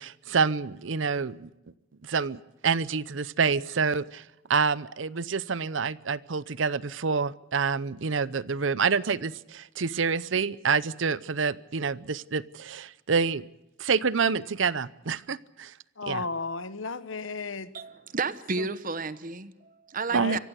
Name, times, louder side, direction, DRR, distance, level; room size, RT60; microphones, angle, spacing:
voice 1, 0.0-1.5 2.0-4.2 4.5-13.5 13.8-15.7 16.1-16.2 20.1-20.4, right 5 dB, 75° right, 0.7 m, -27 dB
voice 2, 16.0-17.7 18.6-18.7 20.1-20.4, left 4 dB, 85° left, 1.2 m, -34 dB
voice 3, 17.7-20.4, right 4 dB, 45° right, 1.1 m, -32 dB
25.0 x 15.5 x 8.2 m
head